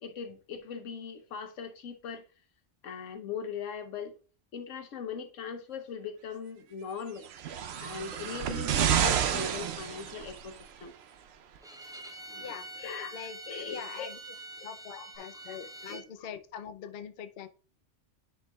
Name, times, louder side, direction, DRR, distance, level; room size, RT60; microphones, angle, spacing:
voice 1, 0.0-2.2 2.8-4.2 4.5-7.3 7.8-10.9 12.1-14.1 14.6-14.7 14.9-15.6 15.9-16.3, left 6 dB, 90° left, 1.2 m, -41 dB
sound 1, 7.2-10.6 11.5-11.6, right 8 dB, 65° right, 0.8 m, -29 dB
Bowed string instrument, 11.6-16.1, right 2 dB, 5° right, 0.3 m, -45 dB
voice 2, 13.7-14.2 14.6-17.5, left 8 dB, 55° left, 0.8 m, -43 dB
10.5 x 4.5 x 2.3 m
omnidirectional pair, 1.3 m